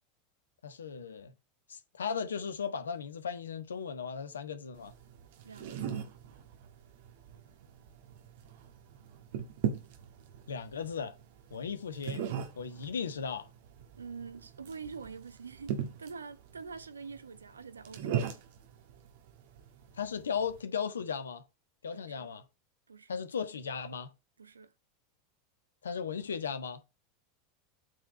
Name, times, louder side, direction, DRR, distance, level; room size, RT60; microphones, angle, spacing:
voice 1, 0.6-1.3 1.7-4.9 10.5-11.1 11.5-12.2 12.6-13.5 20.0-21.4 21.8-22.4 23.1-24.1 25.8-26.8, left 6 dB, 70° left, 1.3 m, -36 dB
sound 1, 4.7-20.6, right 8 dB, 55° right, 1.6 m, -40 dB
voice 2, 5.4-6.0 14.0-15.7 16.0-18.2 21.9-22.3 22.9-23.2 24.4-24.7, right 5 dB, 75° right, 0.9 m, -45 dB
8.5 x 4.6 x 4.3 m
figure-of-eight pair, 85°, 0 cm